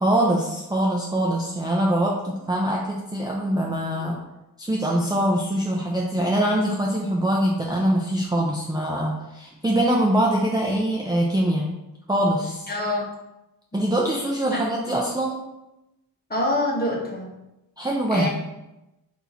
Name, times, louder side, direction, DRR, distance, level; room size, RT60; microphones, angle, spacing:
voice 1, 0.0-4.2 4.6-11.7 12.1-12.6 13.7-15.4 17.8-18.3, right 1 dB, 10° right, -3 dB, 0.5 m, -23 dB
voice 2, 12.7-13.0 13.7-13.8 14.5-14.6 16.3-17.3 18.1-18.3, left 1 dB, 25° left, -3 dB, 1.1 m, -25 dB
4.5 x 2.8 x 4.0 m, 0.94 s
wide cardioid pair, 110°, 40 cm